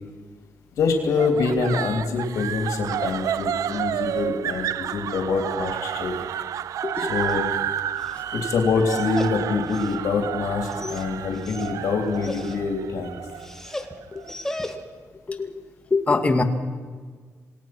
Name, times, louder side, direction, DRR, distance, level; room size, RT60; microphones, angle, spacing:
voice 1, 0.8-6.1 7.0-7.4 8.3-13.2, left 4 dB, 90° left, 3 dB, 3.1 m, -25 dB
sound 1, 1.2-14.3, right 10 dB, 85° right, 0.5 m, -30 dB
Dog, 6.8-15.1, left 1 dB, 10° left, 1.8 m, -39 dB
voice 2, 15.3-15.6 15.9-16.4, left 3 dB, 25° left, 5 dB, 2.0 m, -23 dB
27.5 x 19.0 x 6.1 m, 1.5 s
cardioid pair, 125°, 6 cm